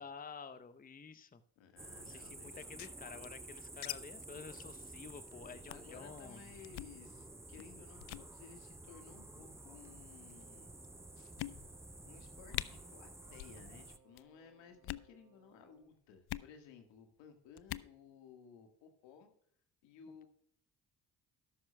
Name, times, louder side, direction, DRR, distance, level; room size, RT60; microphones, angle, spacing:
voice 1, 0.0-1.4 2.1-6.4, left 5 dB, 20° left, 11 dB, 0.8 m, -50 dB
voice 2, 1.6-2.7 5.7-10.7 11.2-11.5 12.0-19.3 19.8-20.3, left 6 dB, 80° left, 6 dB, 1.7 m, -58 dB
sound 1, 1.8-14.0, right 2 dB, 5° right, 0.5 m, -52 dB
sound 2, 2.5-3.9 4.2-4.3 4.6-4.8 5.1-5.3 5.7-5.9 6.6-7.0 7.6-7.7 8.0-8.3 9.2-9.6 10.3-10.4 10.8-10.9 11.4-11.9 12.2-12.3 12.5-12.7 13.3-13.6 13.8-14.2 14.7-15.1 16.3-16.5 17.6-17.9, left 16 dB, 60° left, 0.5 m, -43 dB
Wind instrument woodwind instrument, 10.3-16.0, right 7 dB, 45° right, 1.2 m, -68 dB
13.0 x 11.0 x 2.2 m, 0.65 s
hypercardioid pair, 50°, 44 cm